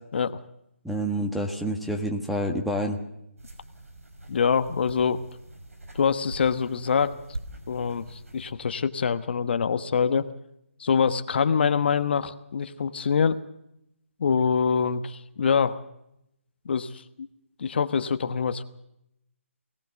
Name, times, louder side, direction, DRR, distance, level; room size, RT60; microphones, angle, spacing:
voice 1, 0.8-3.0, right 1 dB, ahead, 2 dB, 1.3 m, -28 dB
sound 1, 3.4-8.5, right 1 dB, 85° right, 5.2 m, -43 dB
voice 2, 4.3-5.2 5.9-7.2 7.7-10.3 10.8-13.4 14.2-15.8 16.7-17.0 17.6-18.6, left 6 dB, 50° left, 11 dB, 1.1 m, -24 dB
22.0 x 18.0 x 7.0 m, 0.81 s
figure-of-eight pair, 160°, 7 cm